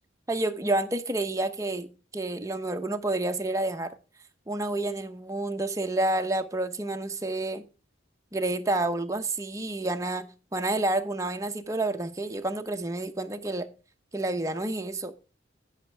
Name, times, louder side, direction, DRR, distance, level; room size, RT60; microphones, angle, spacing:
voice 1, 0.3-3.9 4.5-7.6 8.3-13.7 14.1-15.1, right 2 dB, 15° right, 0.8 m, -29 dB
16.0 x 6.4 x 3.3 m
head